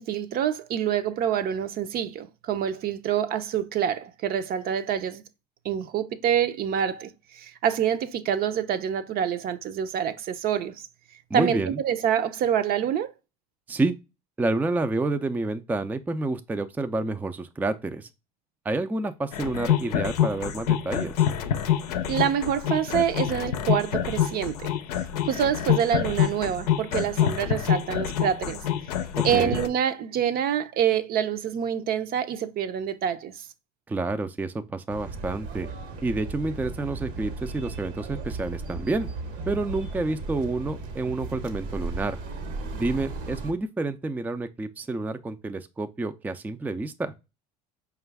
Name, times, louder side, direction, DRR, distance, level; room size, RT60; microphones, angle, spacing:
voice 1, 0.0-5.2 5.6-10.9 11.3-13.1 22.1-24.7 25.2-28.6 29.2-33.5, right 9 dB, 50° right, 0.6 m, -26 dB
voice 2, 11.3-11.8 13.7-13.9 14.4-18.1 18.7-21.1 29.1-29.6 33.9-35.7 36.0-39.1 39.5-42.2 42.7-47.1, right 2 dB, 10° right, 0.4 m, -29 dB
sound 1, 19.3-29.7, left 10 dB, 85° left, 0.5 m, -26 dB
sound 2, 34.9-43.5, right 3 dB, 70° right, 1.0 m, -36 dB
4.9 x 2.4 x 3.3 m
hypercardioid pair, 75°, 20 cm